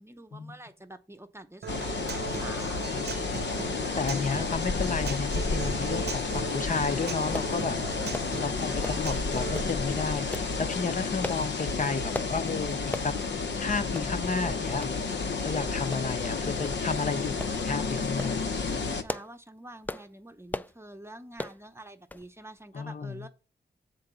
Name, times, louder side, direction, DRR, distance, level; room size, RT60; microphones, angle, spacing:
voice 1, 0.0-3.1 8.6-9.3 18.7-23.3, right 1 dB, 15° right, 0.7 m, -47 dB
Human voice / Acoustic guitar, 1.6-9.6, right 7 dB, 65° right, 0.7 m, -39 dB
sound 1, 1.7-19.0, left 4 dB, 75° left, 0.8 m, -31 dB
voice 2, 4.0-7.8 8.4-13.1 13.6-14.9 15.4-18.4 22.7-23.2, left 4 dB, 45° left, 0.7 m, -32 dB
sound 2, 7.3-7.5 8.1-8.3 8.8-9.1 9.5-9.7 10.3-10.5 11.2-11.5 12.1-12.3 12.9-13.1 13.5-13.6 14.0-14.1 14.8-15.0 15.9-16.3 16.6-16.8 17.4-17.6 18.0-18.4 18.9-19.4 19.8-20.1 20.5-20.8 21.4-21.6 22.1-22.3 22.6-22.7, left 1 dB, 10° left, 0.3 m, -36 dB
8.0 x 3.9 x 6.7 m
wide cardioid pair, 110°, 18 cm